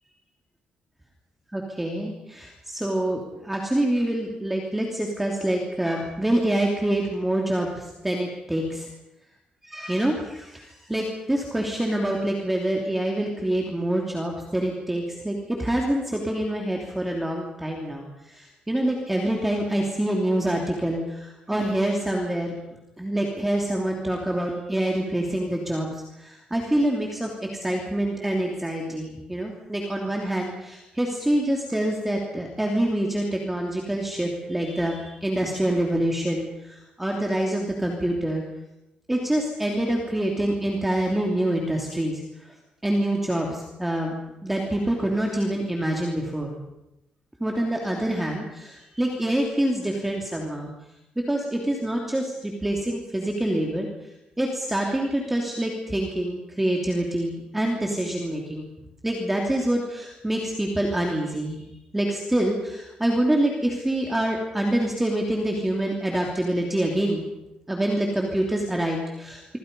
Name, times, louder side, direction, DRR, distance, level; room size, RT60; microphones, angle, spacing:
voice 1, 1.5-8.9 9.6-22.5 23.0-25.9 26.2-38.4 39.1-42.2 42.8-44.1 44.4-46.6 47.4-50.7 51.3-53.9 54.4-58.7 59.0-61.6 61.9-67.2 67.7-69.6, right 1 dB, 10° right, 0 dB, 3.1 m, -26 dB
26.0 x 25.5 x 5.5 m, 0.92 s
cardioid pair, 145°, 2 cm